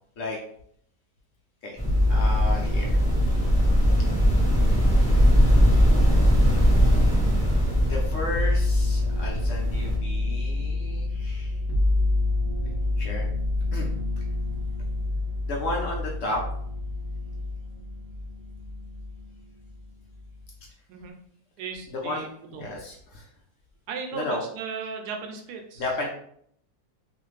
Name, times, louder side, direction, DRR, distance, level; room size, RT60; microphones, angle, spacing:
sound 1, 1.8-19.3 19.6-20.4, left 2 dB, 80° left, 0.4 m, -27 dB
sound 2, 1.8-10.0, equal, 5° left, 1.0 m, -21 dB
voice 1, 2.1-3.0 7.9-11.6 13.0-13.3 13.7-13.9 15.4-16.4 21.9-23.3 24.1-24.5 25.7-26.1, left 2 dB, 65° left, -2 dB, 0.9 m, -33 dB
voice 2, 21.6-22.6 23.9-25.9, right 5 dB, 80° right, 3 dB, 1.1 m, -36 dB
2.6 x 2.4 x 3.1 m, 0.67 s
omnidirectional pair, 1.7 m